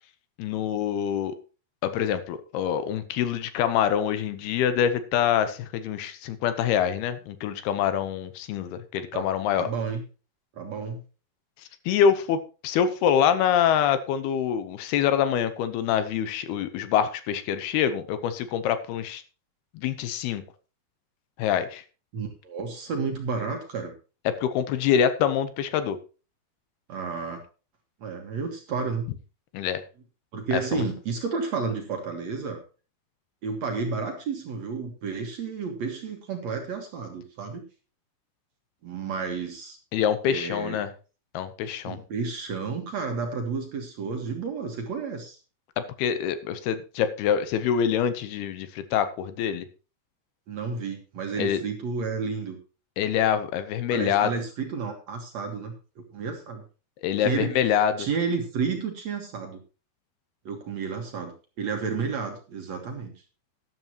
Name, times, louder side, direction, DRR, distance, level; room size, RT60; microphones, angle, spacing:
voice 1, 0.4-1.4 1.8-9.7 11.9-19.2 19.7-20.4 21.4-21.8 24.3-26.0 29.5-29.8 30.5-30.8 39.9-40.9 41.3-42.0 46.0-49.7 51.4-51.6 53.0-54.3 57.0-58.1, left 9 dB, 80° left, 11 dB, 2.8 m, -25 dB
voice 2, 9.6-10.0 10.6-11.0 22.1-23.9 26.9-27.4 28.0-29.1 30.3-32.6 33.4-37.6 38.8-39.8 40.3-40.8 41.8-45.4 50.5-52.6 53.9-55.8 56.1-56.6 57.2-57.5 58.0-59.6 60.5-61.3 61.6-63.1, right 5 dB, 55° right, 4 dB, 2.3 m, -31 dB
13.0 x 11.0 x 3.0 m, 0.34 s
omnidirectional pair, 4.6 m